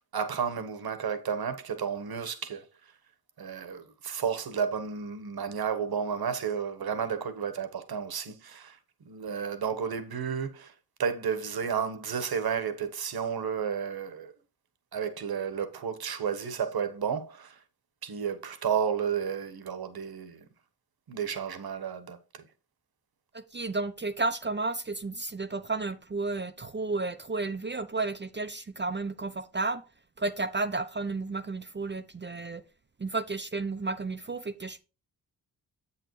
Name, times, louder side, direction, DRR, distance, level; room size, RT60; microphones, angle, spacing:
voice 1, 0.1-2.7 3.4-8.8 9.0-10.7 11.0-14.3 14.9-17.6 18.0-20.4 21.1-22.4, right 7 dB, 55° right, 1.4 m, -32 dB
voice 2, 23.3-29.8 30.2-32.6 33.0-34.8, right 3 dB, 25° right, 0.8 m, -32 dB
7.5 x 7.0 x 3.2 m
supercardioid pair, 45°, 44 cm